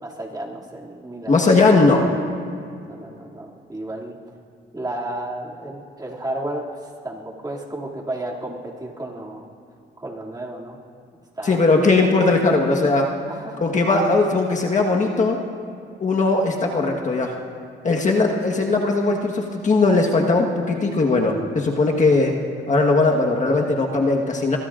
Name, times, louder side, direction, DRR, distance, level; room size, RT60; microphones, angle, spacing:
voice 1, 0.0-1.3 1.9-2.2 2.8-4.2 4.7-9.4 10.0-10.8 11.4-11.7 13.3-13.6, right 1 dB, 20° right, -3 dB, 2.6 m, -32 dB
voice 2, 1.3-2.1 11.4-13.1 13.6-15.4 16.0-17.3 17.8-22.3 22.7-24.6, left 3 dB, 40° left, 0 dB, 1.4 m, -19 dB
23.0 x 22.0 x 2.5 m, 2.4 s
cardioid pair, 90°, 20 cm